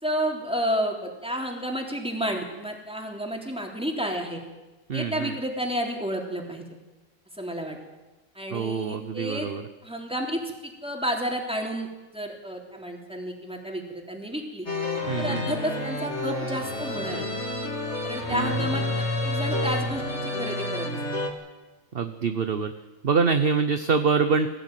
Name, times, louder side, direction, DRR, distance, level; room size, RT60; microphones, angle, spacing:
voice 1, 0.0-4.4 4.9-6.7 7.4-7.8 8.4-9.5 9.8-11.9 12.1-14.7 15.2-17.3 18.0-20.9, equal, 5° right, 1 dB, 3.5 m, -31 dB
voice 2, 4.9-5.3 8.5-9.6 15.1-15.6 18.3-18.5 21.9-22.7 23.0-24.5, right 5 dB, 45° right, 9 dB, 1.0 m, -25 dB
sound 1, 14.7-21.3, left 2 dB, 55° left, 3.0 m, -29 dB
21.5 x 15.0 x 9.1 m, 1.1 s
omnidirectional pair, 1.4 m